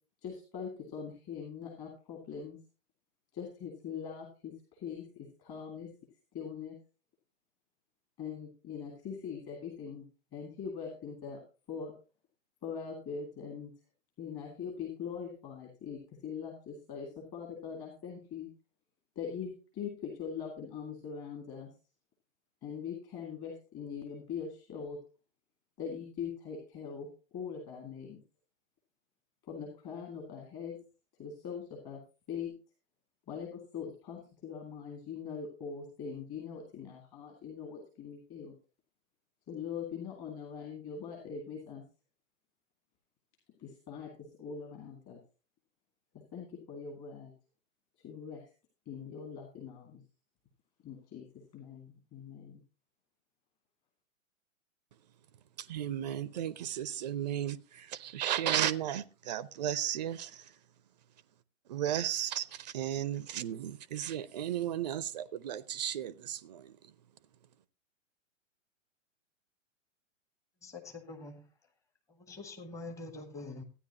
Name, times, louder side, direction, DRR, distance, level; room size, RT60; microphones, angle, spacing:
voice 1, 0.2-2.6 3.3-5.9 6.3-6.8 8.2-10.1 10.3-11.4 11.7-11.9 12.6-13.9 14.2-18.5 19.2-21.7 22.6-25.0 25.8-27.1 27.3-28.2 29.4-30.8 31.1-32.0 32.3-32.6 33.3-38.5 39.5-41.8 43.6-45.2 46.3-47.3 48.0-48.5 48.9-50.0 50.8-52.6, left 6 dB, 25° left, 2.1 m, -42 dB
voice 2, 55.7-60.4 61.7-66.7, right 11 dB, 35° right, 0.5 m, -34 dB
voice 3, 70.6-71.5 72.1-73.6, left 3 dB, 10° left, 1.0 m, -45 dB
14.0 x 9.6 x 2.8 m
figure-of-eight pair, 115°, 39 cm